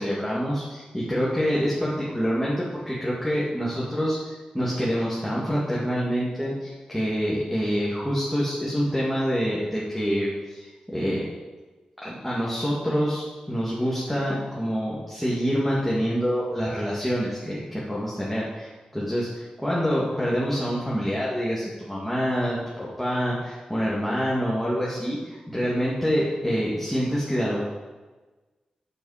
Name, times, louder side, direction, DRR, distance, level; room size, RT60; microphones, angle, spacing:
voice 1, 0.0-11.2 12.0-27.6, equal, ahead, -7 dB, 2.1 m, -26 dB
8.5 x 8.4 x 5.0 m, 1.2 s
wide cardioid pair, 110°, 2 cm